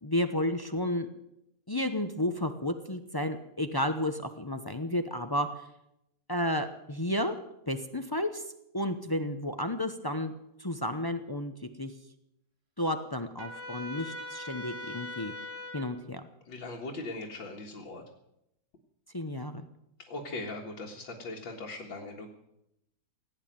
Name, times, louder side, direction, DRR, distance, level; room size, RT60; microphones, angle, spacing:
voice 1, 0.0-1.1 1.7-5.7 6.3-7.3 7.7-8.4 8.7-10.3 10.6-11.9 12.8-15.3 15.7-16.2 19.1-19.7, left 1 dB, 30° left, 8 dB, 0.4 m, -32 dB
Trumpet, 13.4-15.9, left 2 dB, 70° right, 3.5 m, -41 dB
voice 2, 16.5-18.0 20.1-22.3, left 2 dB, 85° left, -2 dB, 2.5 m, -39 dB
17.5 x 9.0 x 9.0 m, 0.82 s
omnidirectional pair, 2.0 m